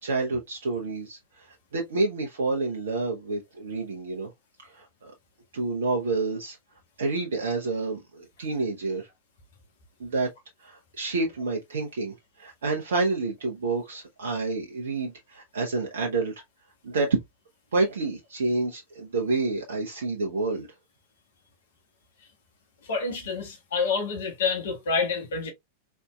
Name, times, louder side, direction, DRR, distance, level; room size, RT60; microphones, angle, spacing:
voice 1, 0.0-1.5 1.7-4.3 4.6-5.1 5.5-6.6 7.0-9.1 10.0-10.3 10.6-16.3 16.8-17.2 17.7-20.7, right 3 dB, 65° right, 0.9 m, -28 dB
voice 2, 22.8-25.5, left 4 dB, 60° left, 1.6 m, -28 dB
4.1 x 3.5 x 2.3 m
figure-of-eight pair, 90°, 0 cm